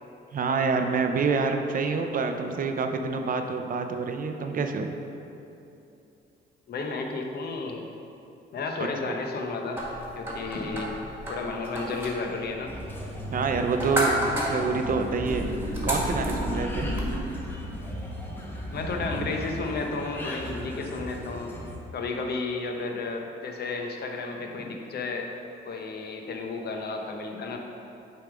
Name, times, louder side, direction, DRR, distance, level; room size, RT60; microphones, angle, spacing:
voice 1, 0.3-4.9 9.1-9.2 13.3-14.1 14.5-15.5 15.8-16.9, right 4 dB, 45° right, 6 dB, 0.5 m, -27 dB
voice 2, 6.7-7.8 8.5-9.8 10.2-10.9 11.3-12.7 18.7-21.5 21.9-25.3 25.6-27.6, left 3 dB, 55° left, 3 dB, 0.8 m, -32 dB
sound 1, 9.8-17.1, equal, 10° right, 1.5 m, -33 dB
sound 2, 12.7-21.8, equal, 10° left, 0.9 m, -38 dB
sound 3, 15.2-17.7 18.6-19.6, equal, 30° left, 1.3 m, -33 dB
6.6 x 3.5 x 4.8 m, 2.8 s
cardioid pair, 90°, 20 cm